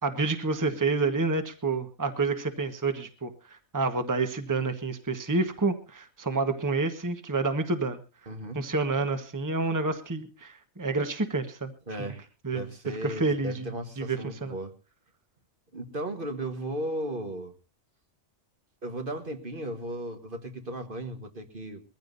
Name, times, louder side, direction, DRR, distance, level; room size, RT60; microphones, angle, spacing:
voice 1, 0.0-8.0 8.5-11.7 12.4-12.7 13.0-14.5, right 3 dB, 15° right, 7 dB, 1.3 m, -29 dB
voice 2, 8.3-8.7 11.9-14.7 15.7-17.5 18.8-21.8, right 1 dB, 45° right, 6 dB, 1.6 m, -36 dB
22.0 x 15.0 x 2.6 m, 0.31 s
omnidirectional pair, 1.2 m